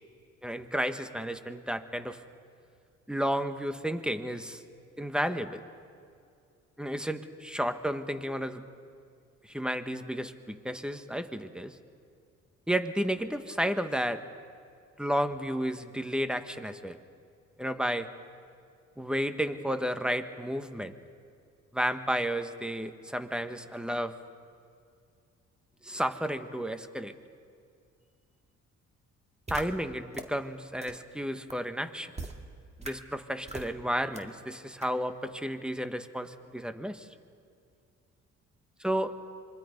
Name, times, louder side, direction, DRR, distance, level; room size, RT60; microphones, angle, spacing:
voice 1, 0.4-2.2 3.1-4.6 5.0-5.6 6.8-8.6 9.4-11.8 12.7-14.2 15.0-17.0 17.6-18.1 19.0-20.9 21.7-24.1 25.8-27.1 29.5-32.1 32.8-37.1 38.8-39.1, equal, 5° right, 9 dB, 1.3 m, -32 dB
sound 1, 29.5-29.6 30.1-30.2 30.8-30.9 31.5-31.6 32.1-32.3 32.8-32.9 33.5-33.7 34.1-34.2 34.8-34.9, right 2 dB, 20° right, 2.2 m, -37 dB
26.0 x 23.5 x 5.3 m, 2.3 s
cardioid pair, 90°, 30 cm